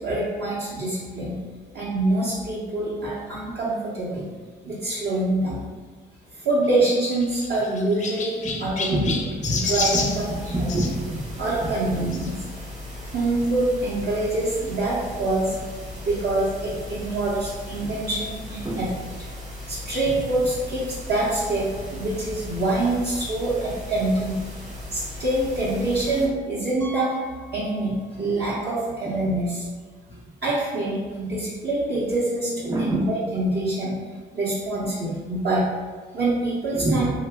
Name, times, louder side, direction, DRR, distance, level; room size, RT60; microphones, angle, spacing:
voice 1, 0.0-1.3 1.7-4.3 4.6-5.6 6.3-9.0 9.5-10.3 11.4-12.3 13.0-15.5 16.0-18.9 19.7-24.4 24.9-27.1 27.5-29.7 30.4-33.9 34.3-35.6 36.1-37.1, right 2 dB, 55° right, -8 dB, 0.8 m, -25 dB
Chirp tweet, 6.6-10.9 12.1-12.3 13.0-13.1 13.3-13.4 14.7-14.8, left 4 dB, 40° left, 0.4 m, -30 dB
voice 2, 8.9-11.4 11.9-12.1 17.8-17.9 18.6-18.8 29.0-29.2 30.1-30.2 32.7-33.1 36.7-37.1, right 1 dB, 15° right, -1 dB, 0.6 m, -27 dB
sound 1, 9.6-26.3, left 1 dB, 35° right, 1.0 m, -37 dB
Piano, 26.8-28.4 28.7-28.8 29.4-29.5 29.8-29.9 31.9-32.0, left 1 dB, 90° right, 0.7 m, -43 dB
2.8 x 2.1 x 3.3 m, 1.4 s
cardioid pair, 90°, 20 cm